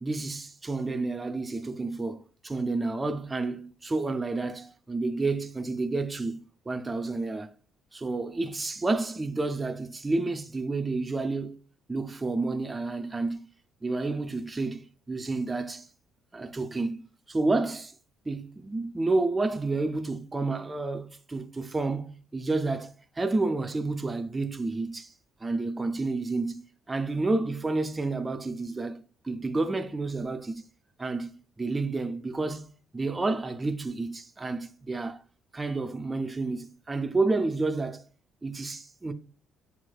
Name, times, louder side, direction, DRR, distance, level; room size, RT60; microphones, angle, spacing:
voice 1, 0.0-7.5 7.9-11.6 11.9-13.5 13.8-15.9 16.3-17.0 17.3-17.9 18.3-25.1 25.4-30.6 31.0-31.3 31.6-32.7 32.9-35.2 35.5-38.0 38.4-39.1, right 3 dB, 15° right, 0.3 m, -30 dB
7.0 x 3.1 x 2.3 m
cardioid pair, 160°, 0 cm